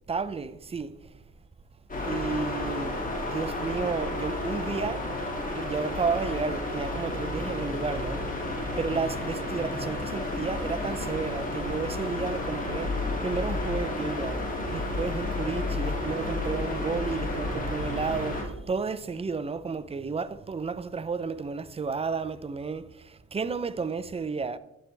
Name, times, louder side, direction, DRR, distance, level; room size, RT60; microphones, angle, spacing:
voice 1, 0.1-0.9 2.0-5.1 5.5-8.3 8.8-24.6, right 5 dB, 20° right, 0.5 m, -32 dB
sound 1, 1.9-18.4, left 2 dB, 25° left, 2.5 m, -31 dB
11.0 x 7.5 x 3.3 m
cardioid pair, 90°, 30 cm